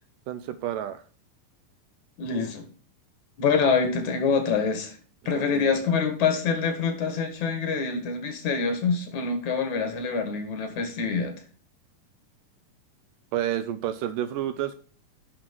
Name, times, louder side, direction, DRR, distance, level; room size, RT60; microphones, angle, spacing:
voice 1, 0.3-1.0 5.3-5.8 13.3-14.8, right 11 dB, 80° right, 12 dB, 2.1 m, -30 dB
voice 2, 2.2-2.7 3.4-4.9 5.3-11.4, left 5 dB, 60° left, 6 dB, 2.8 m, -25 dB
10.5 x 6.1 x 4.6 m, 0.40 s
omnidirectional pair, 4.2 m